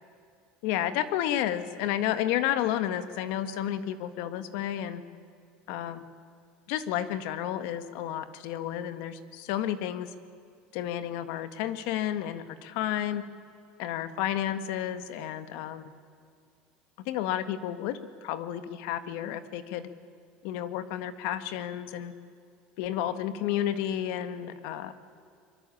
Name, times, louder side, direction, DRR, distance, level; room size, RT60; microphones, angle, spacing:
voice 1, 0.6-5.0 5.7-6.1 6.7-10.1 10.7-13.2 13.8-15.9 17.1-19.9 20.4-22.1 22.8-24.9, left 11 dB, 65° left, 12 dB, 1.7 m, -31 dB
25.0 x 23.0 x 8.7 m, 2.3 s
cardioid pair, 165°, 4 cm